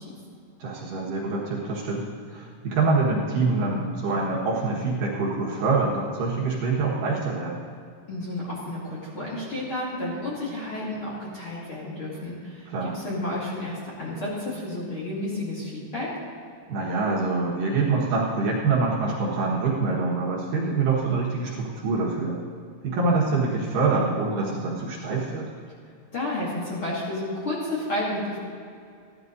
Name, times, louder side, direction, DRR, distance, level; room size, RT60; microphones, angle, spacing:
voice 1, 0.6-2.1 2.3-7.6 12.7-13.0 16.7-22.4 22.8-25.5, right 3 dB, 60° right, -4 dB, 2.7 m, -25 dB
voice 2, 8.1-12.7 12.9-16.1 26.1-28.4, left 1 dB, 35° left, -7 dB, 2.7 m, -31 dB
15.5 x 11.5 x 4.0 m, 2.3 s
omnidirectional pair, 4.7 m